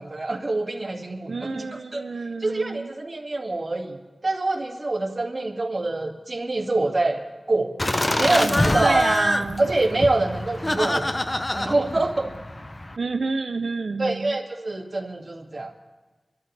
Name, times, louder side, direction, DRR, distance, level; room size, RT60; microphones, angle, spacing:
voice 1, 0.0-1.7 1.9-2.0 2.4-7.2 7.5-7.7 8.2-9.0 9.6-11.1 11.5-12.3 14.0-15.7, right 2 dB, 40° right, -1 dB, 2.0 m, -25 dB
voice 2, 1.3-2.9 8.8-9.6 13.0-14.3, right 3 dB, 80° right, 7 dB, 0.4 m, -28 dB
Laughter, 7.8-13.0, left 1 dB, 30° left, 0.7 m, -25 dB
25.5 x 13.0 x 3.2 m, 1.3 s
wide cardioid pair, 80°, 0 cm